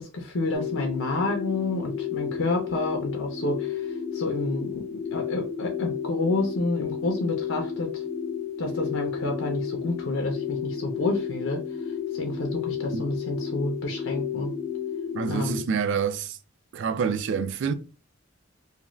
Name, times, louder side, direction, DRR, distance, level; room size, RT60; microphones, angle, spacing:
voice 1, 0.0-7.9 8.6-11.6 12.1-14.5 15.3-15.6, left 2 dB, 75° left, 0.6 m, -29 dB
sound 1, 0.5-15.6, left 8 dB, 10° left, 0.6 m, -32 dB
voice 2, 15.1-16.4 16.7-17.7, right 6 dB, 60° right, 0.3 m, -27 dB
2.5 x 2.3 x 3.0 m
head